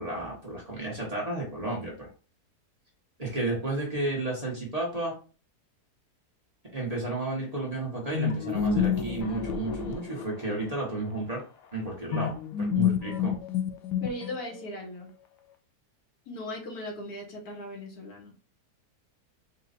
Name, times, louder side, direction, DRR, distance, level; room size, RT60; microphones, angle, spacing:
voice 1, 0.0-2.1 3.2-5.1 6.7-11.4 11.7-13.3, right 2 dB, 25° right, -3 dB, 1.1 m, -32 dB
sound 1, 8.1-10.7 12.1-14.6, left 8 dB, 85° left, 1.2 m, -29 dB
voice 2, 14.0-15.1 16.3-18.3, left 1 dB, 70° left, 0 dB, 1.6 m, -38 dB
4.2 x 2.4 x 4.0 m, 0.36 s
omnidirectional pair, 1.7 m